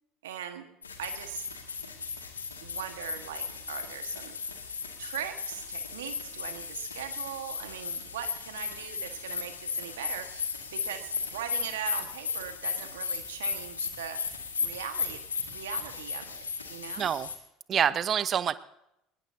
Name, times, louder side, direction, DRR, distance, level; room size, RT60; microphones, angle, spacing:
voice 1, 0.2-0.7 1.0-1.4 2.6-4.4 5.0-14.2 14.6-15.2 15.5-17.1, right 9 dB, 75° right, 7 dB, 1.5 m, -40 dB
sound 1, 0.8-17.3, left 6 dB, 85° left, 1.9 m, -36 dB
voice 2, 17.0-17.3 17.7-18.5, right 9 dB, 40° right, 15 dB, 0.9 m, -26 dB
23.0 x 20.5 x 2.7 m, 0.83 s
figure-of-eight pair, 65°, 0 cm